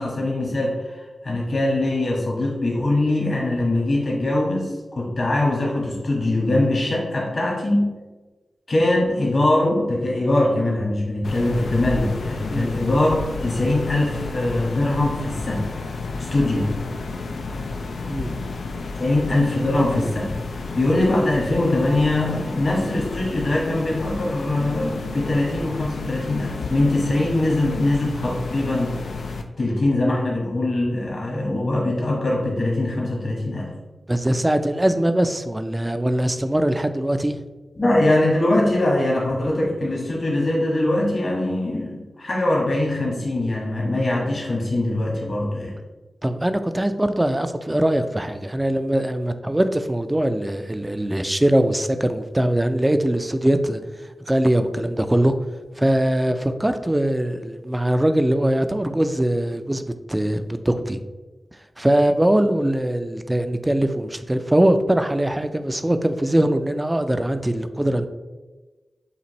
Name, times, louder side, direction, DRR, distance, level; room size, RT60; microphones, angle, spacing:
voice 1, 0.0-7.9 8.7-15.7 16.2-16.7 19.0-20.4 20.7-28.9 29.6-33.7 37.8-45.7, left 1 dB, 60° left, -3 dB, 1.5 m, -22 dB
sound 1, 11.2-29.4, left 3 dB, 85° left, 0.4 m, -31 dB
voice 2, 18.1-18.5 34.1-37.4 46.2-55.4 55.7-61.0 61.8-68.1, right 1 dB, 20° right, 9 dB, 0.4 m, -21 dB
6.9 x 2.5 x 3.0 m, 1.2 s
cardioid pair, 40°, 0 cm